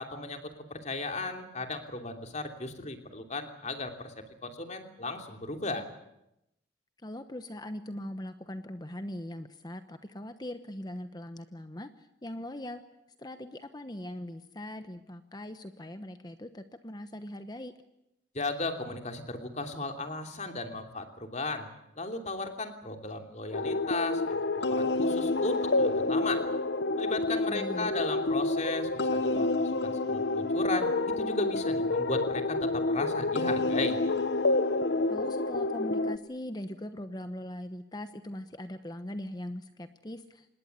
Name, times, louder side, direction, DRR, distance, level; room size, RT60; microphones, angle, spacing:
voice 1, 0.0-5.9 18.3-21.7 22.0-26.4 27.0-30.9 31.2-34.0, left 2 dB, 40° left, 5 dB, 3.0 m, -36 dB
voice 2, 7.0-12.8 13.2-17.7 27.5-27.9 35.1-40.5, left 1 dB, 20° left, 9 dB, 1.0 m, -40 dB
sound 1, 23.5-36.2, left 2 dB, 65° left, 0.9 m, -28 dB
26.5 x 20.0 x 8.3 m, 0.85 s
head